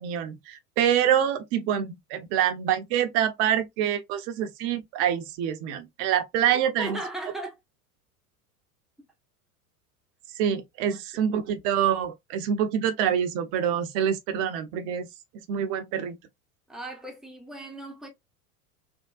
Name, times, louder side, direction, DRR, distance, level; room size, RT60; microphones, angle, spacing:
voice 1, 0.0-7.0 10.4-15.1 15.5-16.1, right 9 dB, 45° right, 0.7 m, -26 dB
voice 2, 6.5-7.6 10.8-11.0 16.7-18.1, right 2 dB, ahead, 0.8 m, -37 dB
3.5 x 2.1 x 2.4 m
hypercardioid pair, 85°, 46 cm